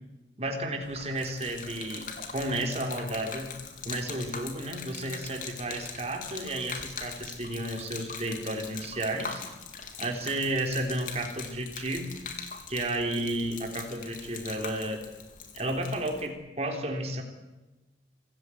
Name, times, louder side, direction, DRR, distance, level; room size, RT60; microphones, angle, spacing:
voice 1, 0.4-3.5 3.9-9.4 10.0-12.2 12.7-15.1 15.5-17.2, right 1 dB, 35° right, 3 dB, 3.8 m, -32 dB
Gurgling / Liquid, 0.8-16.3, left 5 dB, 45° left, 3.8 m, -42 dB
25.5 x 16.0 x 9.5 m, 1.1 s
head